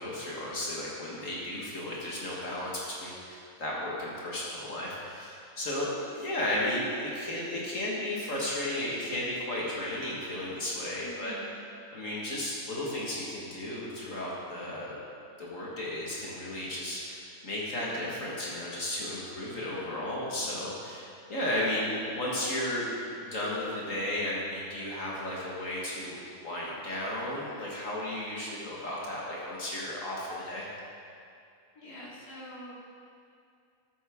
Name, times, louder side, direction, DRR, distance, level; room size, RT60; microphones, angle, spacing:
voice 1, 0.0-11.4 11.9-15.0 15.4-22.9 23.2-26.2 26.4-30.7, left 1 dB, 55° left, -5 dB, 1.9 m, -34 dB
voice 2, 11.0-11.6 31.7-32.7, equal, 75° left, -7 dB, 3.0 m, -45 dB
13.5 x 7.8 x 3.6 m, 2.4 s
omnidirectional pair, 1.7 m